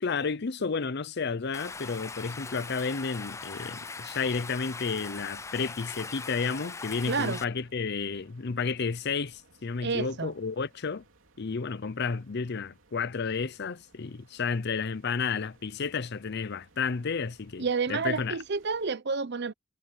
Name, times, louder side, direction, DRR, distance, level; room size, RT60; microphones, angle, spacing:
voice 1, 0.0-11.0 11.4-18.4, left 5 dB, 55° left, 0.6 m, -32 dB
sound 1, 1.4-18.9, right 2 dB, 70° right, 3.2 m, -62 dB
Stream, 1.5-7.4, left 4 dB, 15° left, 0.4 m, -40 dB
voice 2, 7.1-7.4 9.8-10.3 17.6-19.5, right 4 dB, 55° right, 0.8 m, -29 dB
head